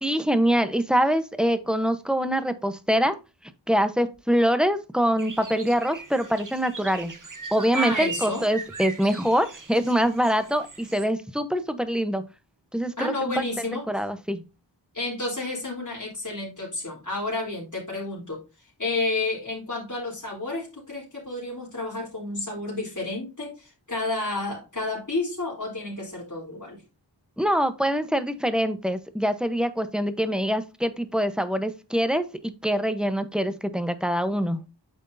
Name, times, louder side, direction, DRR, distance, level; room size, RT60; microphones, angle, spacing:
voice 1, 0.0-3.2 3.7-7.1 7.5-12.2 12.7-13.4 13.9-14.4 27.4-34.6, equal, ahead, 10 dB, 0.9 m, -24 dB
sound 1, 5.2-11.1, right 5 dB, 45° right, 1.0 m, -37 dB
voice 2, 7.7-8.5 13.0-13.9 14.9-18.4 18.8-26.8, left 2 dB, 45° left, -5 dB, 3.6 m, -31 dB
8.8 x 6.4 x 2.7 m, 0.28 s
wide cardioid pair, 45°, 43 cm